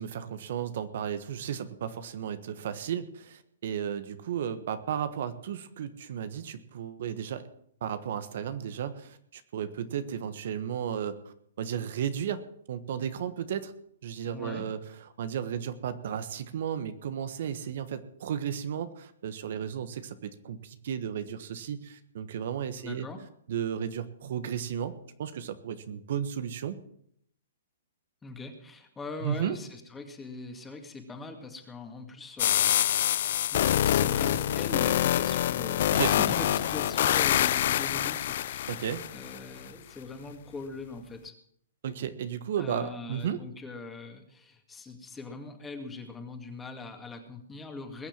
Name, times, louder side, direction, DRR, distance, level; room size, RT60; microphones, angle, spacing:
voice 1, 0.0-7.4 7.8-12.4 12.7-13.7 14.0-14.8 15.2-23.1 23.5-24.9 25.2-26.8 29.2-29.6 35.9-36.1 38.7-39.0 41.8-43.4, right 8 dB, 60° right, 11 dB, 1.3 m, -34 dB
voice 2, 14.3-14.7 22.8-23.2 28.2-33.1 33.5-41.3 42.6-48.1, left 3 dB, 10° left, 5 dB, 2.3 m, -41 dB
sound 1, 32.4-39.4, left 11 dB, 60° left, 0.5 m, -26 dB
21.0 x 7.3 x 7.5 m, 0.67 s
hypercardioid pair, 135°, 0 cm